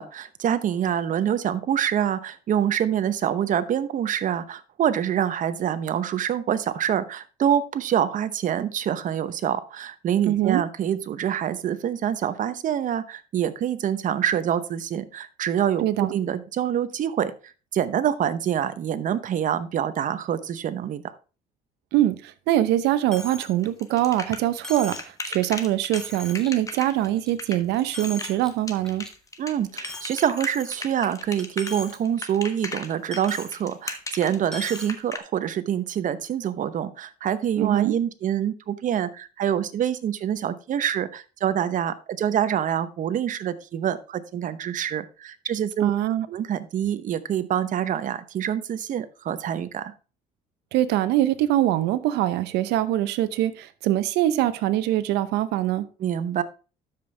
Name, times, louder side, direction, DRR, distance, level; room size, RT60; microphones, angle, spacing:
voice 1, 0.0-21.1 29.4-45.9 46.3-49.9 56.0-56.4, right 9 dB, 50° right, 0.8 m, -26 dB
voice 2, 10.3-10.6 15.8-16.1 21.9-29.1 37.6-37.9 45.8-46.3 50.7-55.9, right 13 dB, 85° right, 0.8 m, -23 dB
Coin (dropping), 23.1-23.5 23.9-24.0 24.6-25.1 25.6-25.7 25.9-26.5 27.0-27.5 27.8-28.5 28.9-29.1 29.8-31.0 31.4-32.0 32.3-32.4 33.1-33.5 34.5-34.9, left 1 dB, 5° left, 1.6 m, -38 dB
sound 1, 23.6-35.2, left 3 dB, 20° left, 1.2 m, -36 dB
12.5 x 5.3 x 3.3 m
cardioid pair, 110°, 17 cm